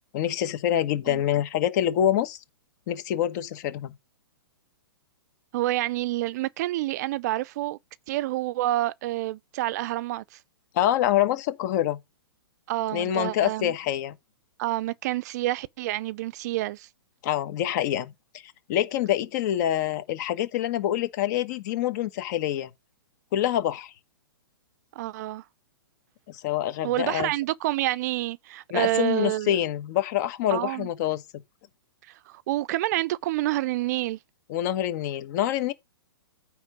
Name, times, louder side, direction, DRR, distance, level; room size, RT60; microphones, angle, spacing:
voice 1, 0.1-2.4 2.9-3.9 10.7-12.0 12.9-14.2 17.2-18.1 18.7-22.7 23.3-23.9 26.3-27.3 28.7-31.2 34.5-35.7, left 11 dB, 45° left, 1.3 m, -26 dB
voice 2, 5.5-7.8 8.1-10.4 12.7-13.7 14.6-16.9 25.0-25.4 26.8-29.6 30.5-30.9 32.1-34.2, right 16 dB, 45° right, 0.4 m, -28 dB
9.5 x 3.6 x 6.0 m
hypercardioid pair, 130°, 13 cm